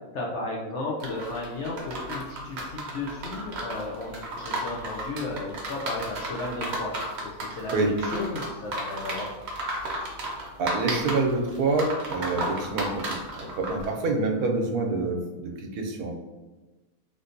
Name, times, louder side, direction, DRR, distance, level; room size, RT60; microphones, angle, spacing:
voice 1, 0.1-6.9 7.4-9.3, left 2 dB, 65° left, -3 dB, 0.7 m, -34 dB
sound 1, 1.0-13.8, right 1 dB, 55° right, 0.8 m, -33 dB
voice 2, 10.6-13.2 13.6-16.1, right 3 dB, 80° right, 1 dB, 1.1 m, -26 dB
3.4 x 2.6 x 2.5 m, 1.2 s
omnidirectional pair, 1.6 m